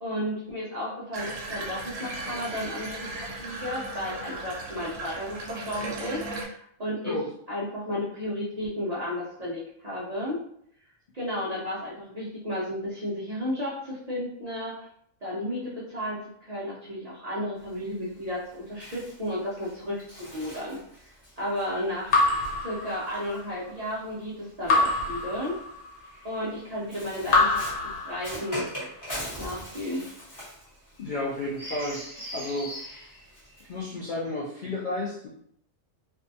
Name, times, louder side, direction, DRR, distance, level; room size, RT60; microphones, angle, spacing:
voice 1, 0.0-7.2 7.5-10.4 11.1-14.9 15.2-20.8 21.4-22.2 22.6-25.6 26.2-28.7 29.4-30.0, left 1 dB, 45° right, -7 dB, 0.5 m, -33 dB
Water tap faucet / Bathtub (filling or washing), 1.1-6.4, right 2 dB, 80° right, 1.0 m, -36 dB
Bird, 17.6-24.1 25.0-33.8, equal, 15° left, 1.0 m, -42 dB
Raindrop / Drip, 22.1-23.5 24.7-26.1 27.3-28.7, left 3 dB, 90° left, 1.1 m, -26 dB
voice 2, 31.0-32.0 32.3-32.7 33.7-35.3, left 2 dB, 70° left, -4 dB, 0.4 m, -32 dB
2.5 x 2.2 x 2.6 m, 0.68 s
omnidirectional pair, 1.3 m